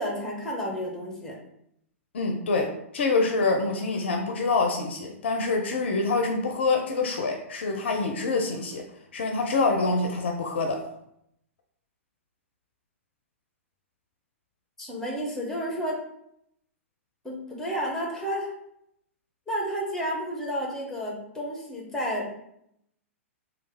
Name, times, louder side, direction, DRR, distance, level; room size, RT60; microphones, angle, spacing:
voice 1, 0.0-1.4 14.8-16.0 17.2-18.5 19.5-22.3, equal, 5° left, -2 dB, 0.9 m, -31 dB
voice 2, 2.1-8.8 9.1-10.8, left 3 dB, 55° left, 3 dB, 0.5 m, -26 dB
3.1 x 2.3 x 3.3 m, 0.75 s
figure-of-eight pair, 110°, 7 cm